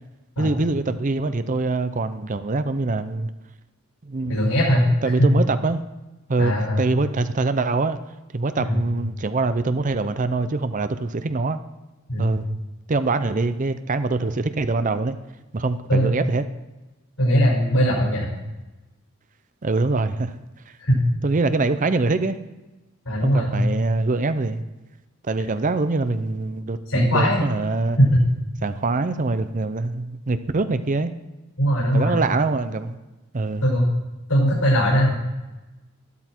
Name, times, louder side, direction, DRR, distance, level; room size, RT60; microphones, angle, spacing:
voice 1, 0.4-3.3 4.0-4.4 5.0-5.8 6.3-8.0 8.3-11.6 12.2-12.5 12.9-15.2 15.5-16.4 19.6-20.3 21.2-22.4 23.2-24.6 25.2-28.0 28.6-31.1 31.9-33.0 33.3-33.7, right 3 dB, 35° right, 11 dB, 0.5 m, -24 dB
voice 2, 4.3-4.9 5.2-5.3 6.4-6.8 8.6-8.8 12.1-12.3 15.9-16.2 17.2-18.3 20.9-21.0 23.1-23.6 26.9-27.4 28.0-28.2 31.6-32.2 33.6-33.9 34.3-35.1, equal, 75° left, -5 dB, 5.6 m, -19 dB
13.5 x 12.5 x 4.5 m, 1.1 s
head